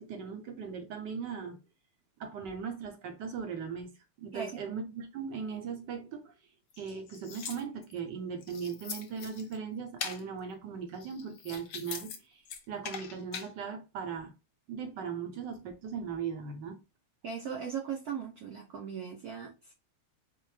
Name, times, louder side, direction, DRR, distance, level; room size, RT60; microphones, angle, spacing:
voice 1, 0.0-1.6 2.2-3.9 4.2-6.3 6.8-14.3 14.7-16.8, right 6 dB, 65° right, 1.2 m, -39 dB
sound 1, 6.7-8.0 8.4-9.6 10.0-10.2 10.9-12.2 12.4-13.5, left 7 dB, 70° left, 1.0 m, -41 dB
voice 2, 17.2-19.7, right 7 dB, 85° right, 0.8 m, -38 dB
4.5 x 2.0 x 3.2 m
omnidirectional pair, 2.4 m